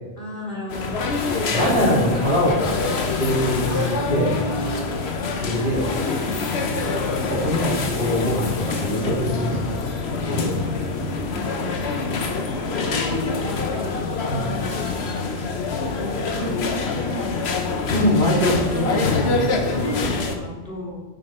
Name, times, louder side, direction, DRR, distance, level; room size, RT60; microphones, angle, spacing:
voice 1, 0.2-1.0 3.5-4.9 5.6-7.2 11.3-12.0 12.3-12.4 12.7-14.0 14.4-15.4 15.9-17.4 17.6-18.3 18.7-19.1 19.6-21.0, equal, 60° left, -7 dB, 3.6 m, -33 dB
sound 1, 0.7-20.4, left 4 dB, 90° left, 1.2 m, -26 dB
voice 2, 1.3-2.6 3.2-4.3 5.3-5.8 7.3-9.9 10.2-10.5 11.1-11.4 14.3-14.5 17.9-19.4 19.8-19.9, equal, 80° right, -5 dB, 3.4 m, -23 dB
sound 2, 6.5-13.1, right 1 dB, ahead, 2.1 m, -36 dB
9.0 x 7.8 x 4.4 m, 1.4 s
omnidirectional pair, 1.0 m